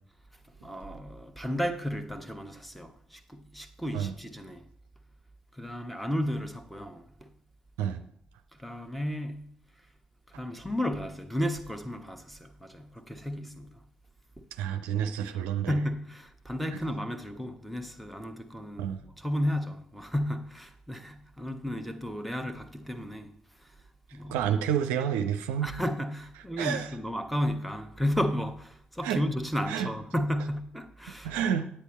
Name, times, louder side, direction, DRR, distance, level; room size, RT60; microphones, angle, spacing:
voice 1, 0.6-4.6 5.5-7.3 8.6-9.5 10.4-13.8 15.7-23.3 23.6-23.7 24.1-24.4 25.6-31.4, equal, ahead, 1.1 m, -33 dB
voice 2, 14.5-15.7 18.8-19.0 24.3-25.7 26.6-26.9 29.0-29.2 29.7-29.9 31.2-31.7, right 9 dB, 70° right, 0.5 m, -29 dB
9.7 x 8.7 x 4.3 m
figure-of-eight pair, 40°, 4 cm